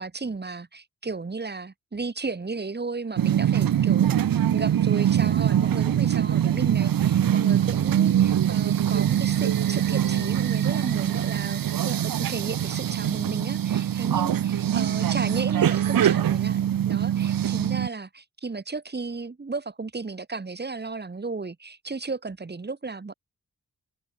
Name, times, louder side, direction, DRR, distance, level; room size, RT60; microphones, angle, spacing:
voice 1, 0.0-23.1, right 4 dB, 30° right, 1.7 m, -34 dB
sound 1, 3.2-17.9, right 10 dB, 75° right, 0.8 m, -23 dB
wide cardioid pair, 115°, 34 cm